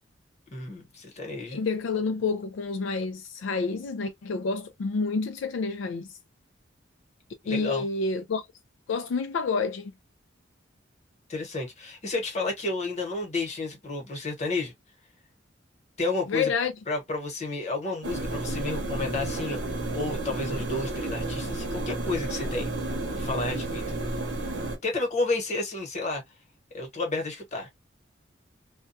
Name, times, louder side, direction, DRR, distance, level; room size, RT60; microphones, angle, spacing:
voice 1, 0.5-1.6 7.4-7.9 11.3-14.7 16.0-16.5 16.9-22.7 23.1-24.0 24.8-26.2 26.7-27.7, left 3 dB, 35° left, 1.1 m, -31 dB
voice 2, 1.5-6.1 7.5-8.5 8.9-9.9 16.3-16.7, left 4 dB, 75° left, 0.4 m, -29 dB
sound 1, 18.0-24.8, right 2 dB, 65° right, 0.8 m, -31 dB
2.2 x 2.2 x 2.6 m
head